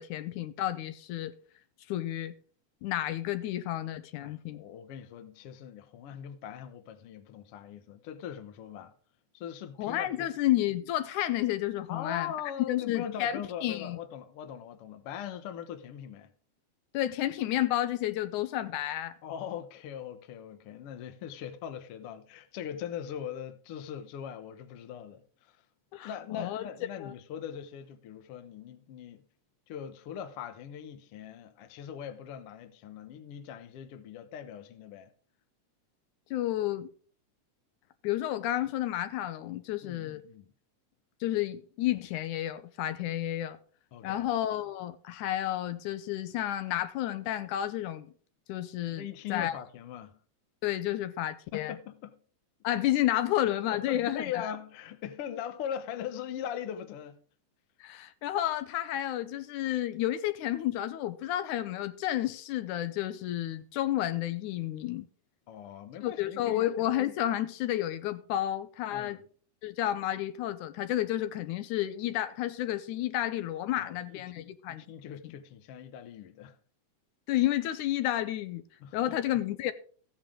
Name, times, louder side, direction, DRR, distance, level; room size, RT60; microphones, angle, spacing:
voice 1, 0.0-1.3 1.9-2.3 2.8-4.6 9.8-12.3 12.7-14.0 16.9-19.2 25.9-26.7 27.0-27.1 36.3-36.9 38.0-40.2 41.2-43.6 44.0-48.1 48.5-49.0 49.3-49.5 50.6-51.8 52.6-54.5 57.8-65.1 66.0-69.2 69.6-74.8 75.2-75.3 77.3-78.6 78.9-79.7, left 13 dB, 80° left, 2.2 m, -31 dB
voice 2, 4.2-8.9 9.3-10.3 11.9-16.3 19.2-25.6 26.0-29.2 29.7-35.1 39.8-40.5 43.9-44.3 48.9-50.2 51.5-52.2 53.7-57.2 65.5-66.7 68.9-69.3 73.8-76.6 78.8-79.1, left 9 dB, 65° left, 1.6 m, -41 dB
15.0 x 8.9 x 3.7 m
omnidirectional pair, 3.5 m